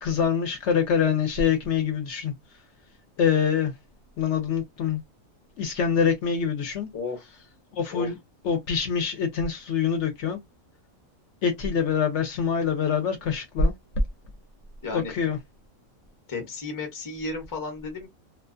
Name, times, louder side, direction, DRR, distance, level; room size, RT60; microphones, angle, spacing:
voice 1, 0.0-2.3 3.2-3.7 4.2-5.0 5.6-6.9 7.7-8.2 8.4-10.4 11.4-13.7 14.9-15.4, left 6 dB, 65° left, 0.8 m, -25 dB
voice 2, 6.9-7.5 7.9-8.1 14.8-15.1 16.3-18.1, left 3 dB, 20° left, 0.6 m, -34 dB
2.4 x 2.3 x 2.4 m
omnidirectional pair, 1.5 m